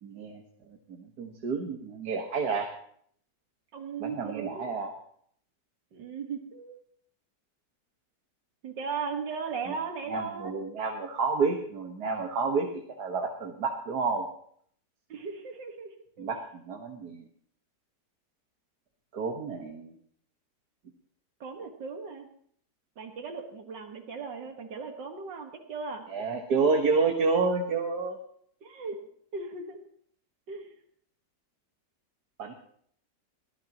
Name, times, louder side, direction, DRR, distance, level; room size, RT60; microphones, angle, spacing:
voice 1, 0.0-2.7 4.0-4.9 10.1-12.7 13.0-14.3 16.2-17.3 19.1-19.9 26.1-28.2 32.4-32.5, right 4 dB, 65° right, 2 dB, 2.0 m, -29 dB
voice 2, 3.7-4.8 5.9-6.8 8.6-10.6 15.1-16.3 21.4-22.3 23.0-26.0 28.6-29.0 29.3-29.8 30.5-30.7, right 5 dB, 85° right, 4 dB, 2.3 m, -37 dB
22.0 x 16.5 x 3.0 m, 0.63 s
omnidirectional pair, 1.9 m